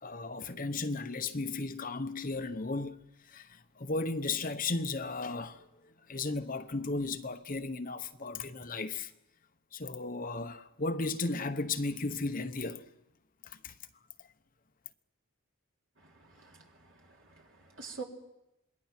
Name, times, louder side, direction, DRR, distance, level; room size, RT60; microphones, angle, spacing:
voice 1, 0.0-3.0 3.3-5.6 6.1-9.1 9.7-12.8 13.6-13.7, left 3 dB, 40° left, 0.9 m, -35 dB
voice 2, 16.0-18.0, right 4 dB, 60° right, 3.6 m, -47 dB
27.0 x 21.0 x 6.0 m
head